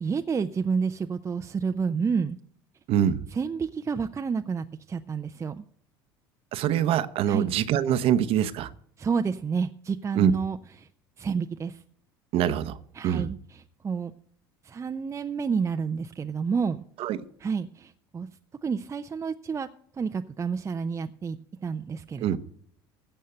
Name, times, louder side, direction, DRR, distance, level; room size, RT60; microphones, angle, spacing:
voice 1, 0.0-2.4 3.3-5.6 7.3-7.5 9.0-10.9 11.2-11.8 13.0-14.1 14.6-16.8 17.4-18.3 18.6-19.7 20.0-21.4 21.6-22.4, right 5 dB, 25° right, 0.6 m, -29 dB
voice 2, 2.9-3.2 6.5-8.7 10.1-10.3 12.3-12.8 13.0-13.3 17.0-17.2 22.2-22.4, right 10 dB, 55° right, 0.9 m, -24 dB
16.0 x 5.5 x 7.8 m
hypercardioid pair, 80°, 12 cm